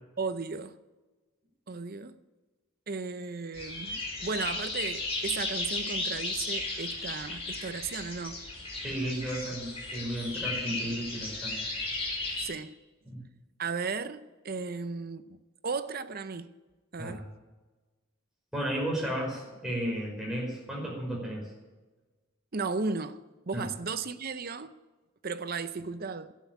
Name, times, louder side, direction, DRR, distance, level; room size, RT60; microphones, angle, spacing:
voice 1, 0.2-0.7 1.7-2.2 2.9-8.4 12.4-12.7 13.6-15.4 15.6-16.5 16.9-17.3 22.5-23.2 23.5-24.7 25.2-26.3, right 4 dB, 45° right, 0.7 m, -35 dB
sound 1, 3.5-12.4, left 2 dB, 30° left, 4.7 m, -35 dB
voice 2, 8.8-11.6 13.1-13.2 17.0-17.2 18.5-21.5 23.5-23.7, right 1 dB, ahead, 5.3 m, -33 dB
12.0 x 9.4 x 9.0 m
head